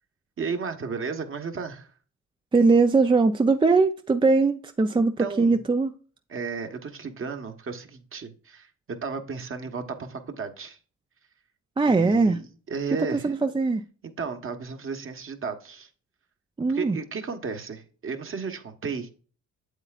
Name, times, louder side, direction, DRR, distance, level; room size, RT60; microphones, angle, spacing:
voice 1, 0.4-1.9 4.9-5.6 6.3-10.8 11.8-13.3 14.0-15.9 16.7-19.1, right 5 dB, 45° right, 1.3 m, -34 dB
voice 2, 2.5-5.9 11.8-12.4 13.1-13.8 16.6-17.0, right 3 dB, 15° right, 0.4 m, -21 dB
8.1 x 7.9 x 2.4 m
cardioid pair, 90°, 30 cm